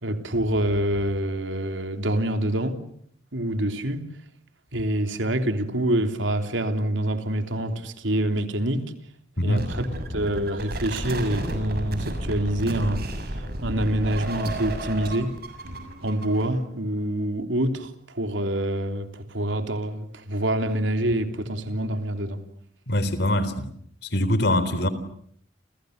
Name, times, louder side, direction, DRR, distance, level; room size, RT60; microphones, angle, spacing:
voice 1, 0.0-2.8 3.3-4.1 4.7-8.9 9.4-9.8 10.1-15.4 16.0-22.4, right 1 dB, 80° right, 3.3 m, -26 dB
sound 1, 9.5-16.6, right 1 dB, 55° right, 6.8 m, -32 dB
voice 2, 22.9-23.7 24.1-24.9, left 1 dB, 60° left, 3.8 m, -23 dB
29.5 x 29.5 x 6.7 m
head